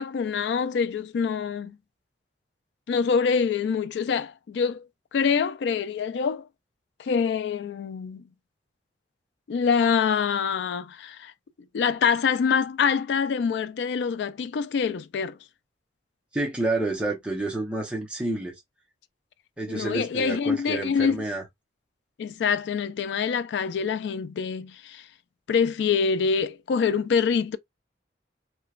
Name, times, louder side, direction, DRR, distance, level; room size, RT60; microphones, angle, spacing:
voice 1, 0.0-1.8 2.9-4.9 5.1-6.5 7.0-8.2 9.5-11.3 11.7-15.4 19.7-21.2 22.2-25.1 25.5-27.6, left 6 dB, 75° left, 0.3 m, -25 dB
voice 2, 16.3-18.5 19.6-21.4, right 2 dB, 5° right, 0.6 m, -29 dB
3.0 x 2.2 x 2.3 m
head